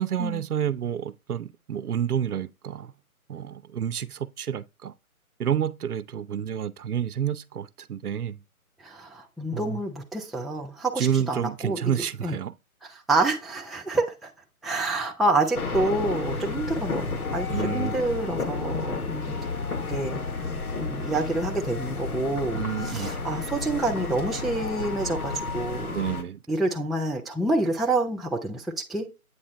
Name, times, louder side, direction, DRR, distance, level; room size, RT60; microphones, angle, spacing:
voice 1, 0.0-2.9 3.3-4.9 5.4-8.4 9.5-9.8 11.0-12.5 17.5-17.9 22.5-23.1 25.9-26.4, right 9 dB, 85° right, 0.7 m, -29 dB
voice 2, 8.8-11.8 12.2-12.4 12.9-14.3 14.6-19.3 19.9-20.2 20.8-26.0 26.5-29.1, right 2 dB, ahead, 0.3 m, -28 dB
sound 1, 15.5-26.2, left 4 dB, 75° left, 1.3 m, -31 dB
8.3 x 2.8 x 4.2 m
hypercardioid pair, 160°, 44 cm